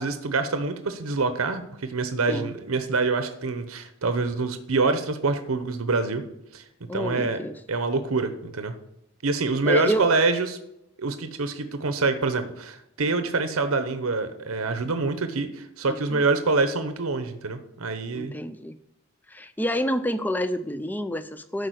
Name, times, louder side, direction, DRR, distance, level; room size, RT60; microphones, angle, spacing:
voice 1, 0.0-6.2 6.5-6.6 6.9-7.4 7.7-8.7 9.2-10.6 11.0-18.3, right 3 dB, 80° right, 9 dB, 0.8 m, -26 dB
voice 2, 6.9-7.6 9.7-10.2 15.9-16.3 18.1-18.8 19.3-21.7, equal, 10° left, 11 dB, 0.4 m, -28 dB
12.5 x 4.8 x 6.4 m, 0.86 s
head